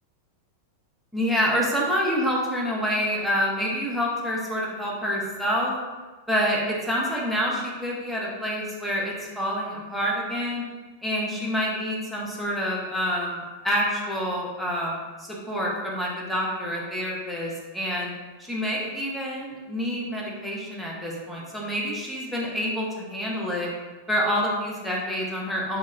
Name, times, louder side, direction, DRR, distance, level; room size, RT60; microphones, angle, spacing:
voice 1, 1.1-5.7 6.3-10.6 11.0-18.1 18.4-23.7 24.1-25.8, equal, ahead, -5 dB, 0.5 m, -27 dB
2.1 x 2.1 x 3.1 m, 1.3 s
figure-of-eight pair, 90°, 0 cm